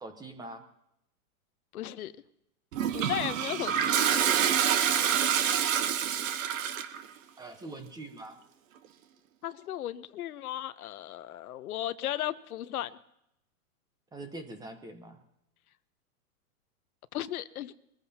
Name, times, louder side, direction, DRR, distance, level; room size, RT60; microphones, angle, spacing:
voice 1, 0.0-0.6 7.4-8.4 14.1-15.2, right 2 dB, 10° right, 1.0 m, -43 dB
voice 2, 1.7-2.1 2.9-4.2 9.4-13.0 17.1-17.7, left 12 dB, 70° left, 0.8 m, -35 dB
Toilet flush, 2.7-7.0, right 9 dB, 60° right, 1.2 m, -27 dB
22.5 x 14.5 x 2.8 m
hypercardioid pair, 140°, 45 cm